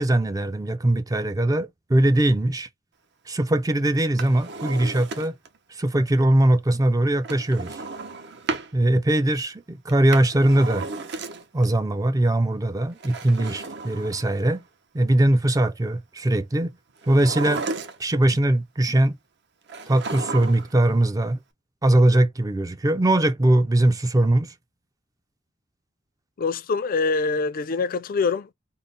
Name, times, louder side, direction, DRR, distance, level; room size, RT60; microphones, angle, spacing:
voice 1, 0.0-2.7 3.3-5.3 5.7-7.8 8.7-10.9 11.5-14.6 14.9-16.7 17.1-17.6 18.0-19.2 19.9-21.4 21.8-24.5, right 1 dB, 20° right, 0.4 m, -21 dB
Drawer open or close, 4.0-5.6 7.2-8.7 9.9-11.7 12.9-14.6 17.0-18.3 19.7-20.8 21.1-21.2, right 3 dB, 60° right, 0.7 m, -34 dB
voice 2, 26.4-28.5, left 4 dB, 45° left, 0.4 m, -24 dB
3.7 x 2.1 x 3.8 m
head